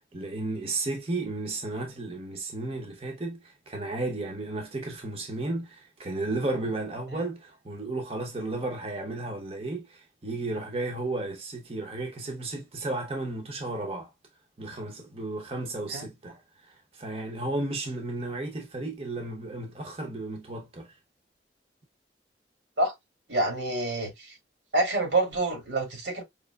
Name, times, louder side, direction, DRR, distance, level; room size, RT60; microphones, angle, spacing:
voice 1, 0.1-3.4 3.7-14.1 14.6-16.4 17.0-20.9, right 2 dB, 35° right, 0.7 m, -33 dB
voice 2, 23.3-24.3 24.7-26.2, right 2 dB, 90° right, 2.2 m, -27 dB
5.0 x 2.9 x 2.2 m
head